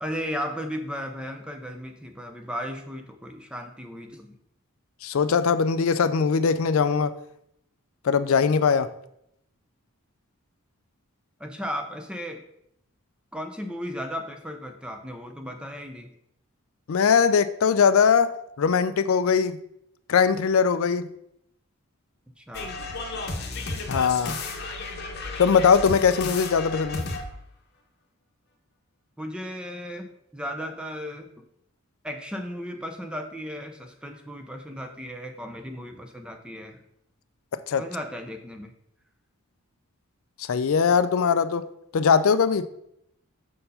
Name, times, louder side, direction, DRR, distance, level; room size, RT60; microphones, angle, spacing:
voice 1, 0.0-4.4 11.4-12.4 13.3-16.1 22.4-22.7 29.2-30.1 30.3-31.3 32.0-36.8 37.8-38.7, equal, 5° right, 5 dB, 0.6 m, -35 dB
voice 2, 5.0-7.1 8.0-8.9 16.9-19.6 20.1-21.1 23.9-24.4 25.4-27.1 37.5-37.8 40.5-41.7 41.9-42.7, left 6 dB, 70° left, 13 dB, 0.4 m, -21 dB
sound 1, 22.5-27.4, left 3 dB, 50° left, 0.9 m, -33 dB
6.5 x 4.5 x 5.6 m, 0.76 s
head